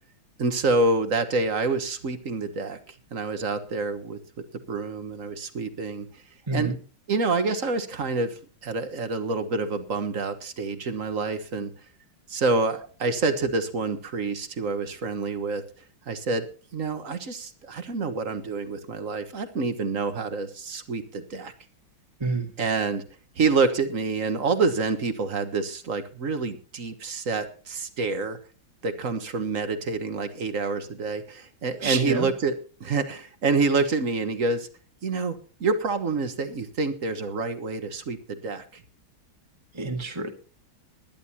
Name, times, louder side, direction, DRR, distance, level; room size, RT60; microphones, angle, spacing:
voice 1, 0.4-2.8 3.1-4.2 4.7-6.1 6.5-6.8 7.1-11.7 12.3-15.6 16.1-16.5 16.7-21.5 22.6-23.0 23.4-28.4 28.8-32.5 32.8-34.7 35.0-38.6, right 3 dB, 45° right, 9 dB, 1.6 m, -27 dB
voice 2, 31.8-32.3 39.7-40.3, right 4 dB, 15° right, 4 dB, 1.6 m, -27 dB
21.0 x 11.0 x 2.9 m, 0.39 s
omnidirectional pair, 2.2 m